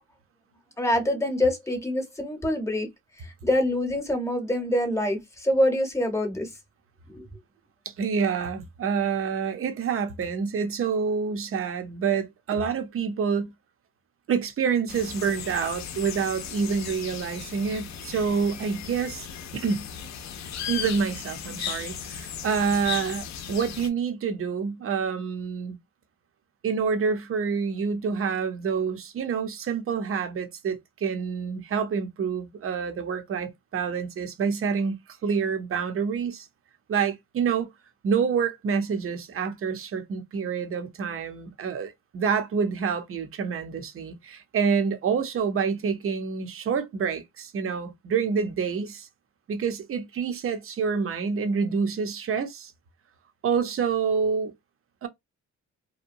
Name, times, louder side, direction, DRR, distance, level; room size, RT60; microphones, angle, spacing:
voice 1, 0.8-2.9 3.2-6.5 7.1-7.2, left 1 dB, 10° left, 0.9 m, -25 dB
voice 2, 7.9-13.5 14.3-19.3 19.5-19.9 20.7-25.8 26.6-35.0 35.2-36.5 36.9-37.7 38.0-49.1 49.5-52.7 53.4-54.5 55.0-55.1, right 6 dB, 45° right, 0.7 m, -27 dB
sound 1, 14.9-23.9, left 8 dB, 65° left, 0.6 m, -37 dB
2.8 x 2.2 x 2.6 m
cardioid pair, 90°, 30 cm